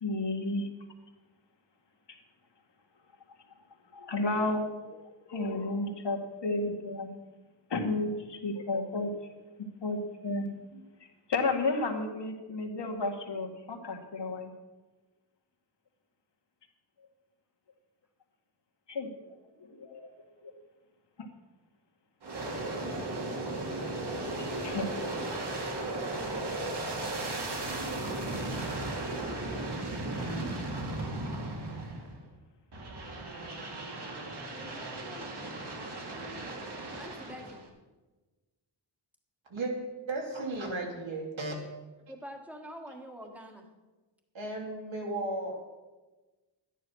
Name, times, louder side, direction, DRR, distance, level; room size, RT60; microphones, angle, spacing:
voice 1, 0.0-0.7 3.9-7.1 7.7-9.1 9.8-10.8 11.3-14.5 18.9-19.4 19.6-20.1 20.4-20.5 21.2-21.3 23.9-24.0 24.6-24.9 30.2-30.4, left 2 dB, 65° left, 3 dB, 1.8 m, -32 dB
Aircraft, 22.2-32.2 32.7-37.7, right 2 dB, 60° right, 2.2 m, -36 dB
voice 2, 34.5-35.3 36.1-36.5 37.0-37.7 42.1-43.7, equal, 5° right, 3 dB, 1.5 m, -46 dB
voice 3, 40.1-41.6 44.3-45.6, right 2 dB, 80° right, 0 dB, 3.1 m, -34 dB
12.5 x 10.0 x 6.3 m, 1.2 s
wide cardioid pair, 175°, 46 cm